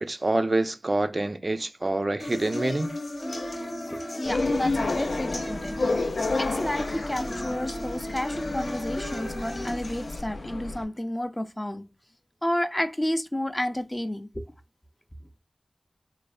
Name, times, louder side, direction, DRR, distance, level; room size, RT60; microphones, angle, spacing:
voice 1, 0.0-2.9, right 2 dB, 50° right, 0.3 m, -26 dB
sound 1, 2.2-10.2, left 1 dB, 70° left, 0.8 m, -35 dB
voice 2, 3.9-5.8 6.4-11.8 12.4-14.5, left 1 dB, 20° left, 0.4 m, -31 dB
sound 2, 4.2-10.8, left 3 dB, 90° left, 0.4 m, -30 dB
3.1 x 2.0 x 2.4 m
cardioid pair, 40°, 0 cm